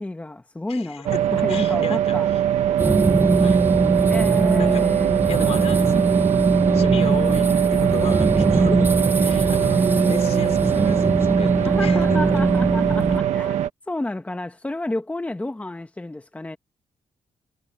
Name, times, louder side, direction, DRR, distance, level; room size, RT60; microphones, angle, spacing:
voice 1, 0.0-2.3 4.1-5.1 8.3-9.0 11.6-16.6, left 2 dB, 10° left, 1.6 m, -31 dB
voice 2, 0.7-1.2 1.5-2.4 3.4-3.6 4.6-4.9 5.3-6.1 6.7-8.9 9.2-12.2, left 8 dB, 65° left, 4.6 m, -35 dB
sound 1, 1.1-13.7, right 11 dB, 90° right, 1.4 m, -22 dB
sound 2, 2.8-13.2, right 2 dB, 20° right, 1.0 m, -21 dB
cardioid pair, 115°, 12 cm